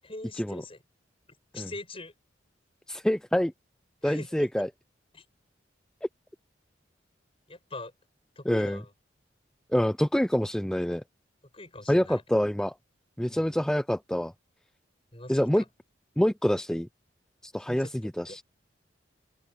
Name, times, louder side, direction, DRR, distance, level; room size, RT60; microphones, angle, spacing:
voice 1, 0.0-0.8 1.5-2.1 4.0-4.5 5.1-5.2 7.5-7.9 8.4-8.9 11.5-12.2 13.3-13.6 15.1-15.6 17.7-17.9 18.2-18.4, left 2 dB, 30° left, 7.7 m, -42 dB
voice 2, 2.9-3.5 4.0-4.7 8.5-8.8 9.7-11.0 11.8-12.7 13.2-14.3 15.3-15.6 16.2-16.9 17.4-18.4, equal, 5° left, 0.3 m, -26 dB
head